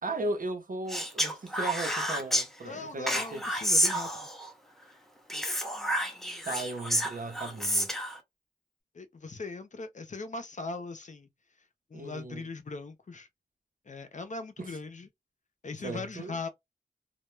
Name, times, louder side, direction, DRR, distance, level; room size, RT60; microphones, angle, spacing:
voice 1, 0.0-3.4 6.5-7.9 11.9-12.5 14.6-14.8 15.8-16.3, right 2 dB, 55° right, 0.7 m, -36 dB
Speech, 0.9-2.5 3.1-4.5 5.3-8.2, equal, ahead, 0.7 m, -29 dB
voice 2, 2.6-4.3 8.9-11.3 11.9-13.3 13.9-15.1 15.6-16.5, left 3 dB, 50° left, 0.5 m, -40 dB
2.2 x 2.1 x 3.1 m
wide cardioid pair, 85°, 17 cm